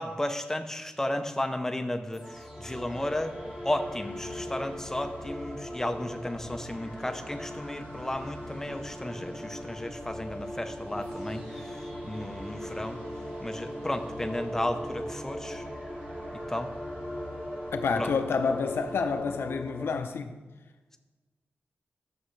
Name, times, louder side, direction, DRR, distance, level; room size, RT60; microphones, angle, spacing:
voice 1, 0.0-3.3 3.6-11.7 12.0-13.0 13.4-15.6 16.5-16.7 18.0-18.1, left 1 dB, 10° left, 0.7 m, -33 dB
sound 1, 2.1-19.9, equal, 10° right, 1.7 m, -39 dB
sound 2, 2.6-19.2, equal, 55° right, 2.1 m, -51 dB
voice 2, 17.7-20.3, left 5 dB, 75° left, 0.7 m, -29 dB
12.5 x 6.9 x 3.2 m
wide cardioid pair, 100°, 4 cm